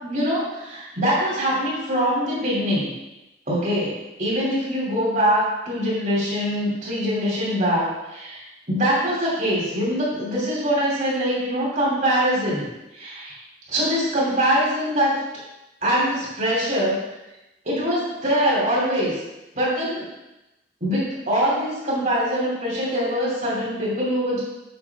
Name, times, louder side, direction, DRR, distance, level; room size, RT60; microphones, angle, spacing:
voice 1, 0.0-2.9 3.5-8.4 8.7-12.7 12.9-13.4 13.7-15.2 15.8-17.0 17.6-19.1 19.5-20.1 20.8-24.4, equal, 45° right, -5 dB, 3.0 m, -23 dB
7.2 x 6.4 x 3.6 m, 0.95 s
head